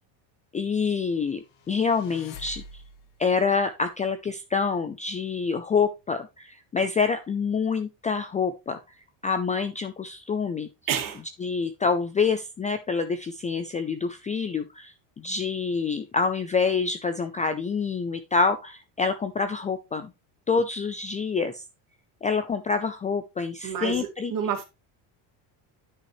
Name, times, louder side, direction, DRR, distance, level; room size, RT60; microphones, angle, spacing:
voice 1, 0.5-2.6 3.2-8.8 9.2-10.7 11.4-20.1 20.5-21.6 22.2-24.3, left 5 dB, 15° left, 0.4 m, -27 dB
sound 1, 1.5-3.3, left 3 dB, 60° left, 2.2 m, -45 dB
voice 2, 10.9-11.2 23.6-24.6, right 8 dB, 45° right, 2.4 m, -29 dB
9.9 x 5.6 x 3.1 m
cardioid pair, 150°, 47 cm